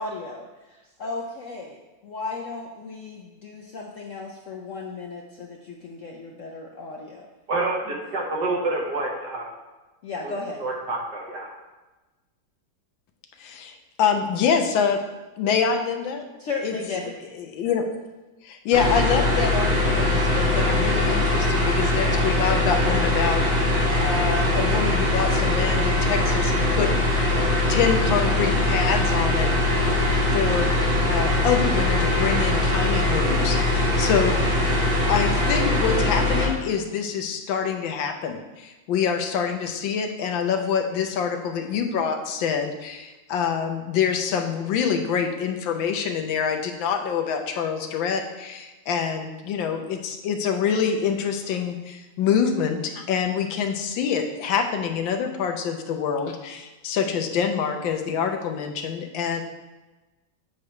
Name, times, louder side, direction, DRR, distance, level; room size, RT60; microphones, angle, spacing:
voice 1, 0.0-7.3 10.0-10.6 16.4-17.1, left 3 dB, 65° left, 0 dB, 0.8 m, -35 dB
voice 2, 7.5-9.5 10.2-11.5, right 2 dB, 65° right, -2 dB, 1.8 m, -28 dB
voice 3, 13.4-15.0 15.4-16.3 16.6-16.7 17.4-18.0 18.4-23.4 24.0-26.9 27.7-29.5 30.3-30.7 31.1-34.6 35.1-59.4, left 7 dB, 90° left, 5 dB, 1.5 m, -26 dB
sound 1, 18.7-36.5, left 2 dB, 85° right, 2.8 m, -21 dB
8.2 x 3.2 x 5.8 m, 1.1 s
omnidirectional pair, 2.0 m